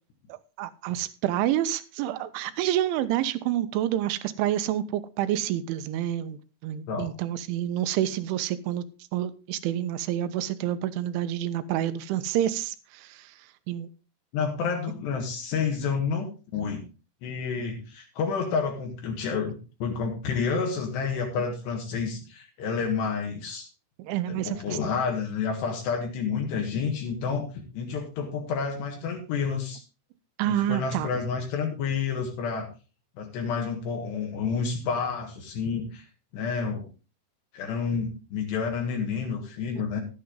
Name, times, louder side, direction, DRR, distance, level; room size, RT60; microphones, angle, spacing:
voice 1, 0.3-8.8 9.1-13.3 13.7-13.9 24.0-24.8 30.4-31.1, right 12 dB, 85° right, 3.2 m, -28 dB
voice 2, 14.3-16.8 17.2-23.7 24.3-27.4 27.7-29.8 30.4-32.7 33.2-36.0 36.3-36.9 37.5-40.0, left 5 dB, 70° left, 3.7 m, -29 dB
12.0 x 9.8 x 3.8 m
omnidirectional pair, 5.3 m